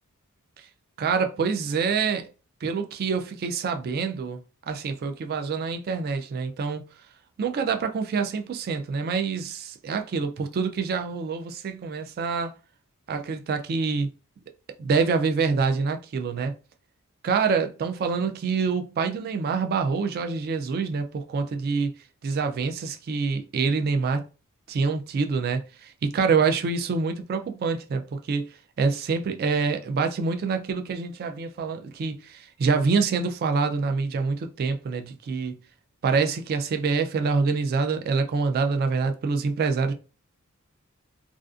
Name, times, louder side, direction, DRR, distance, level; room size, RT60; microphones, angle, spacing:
voice 1, 1.0-2.3 2.6-4.4 4.7-6.8 7.4-12.5 13.1-14.1 14.8-16.5 17.2-21.9 22.2-24.2 24.7-28.5 28.8-35.6 36.0-39.9, right 5 dB, 45° right, 0.3 m, -26 dB
2.4 x 2.3 x 2.4 m
head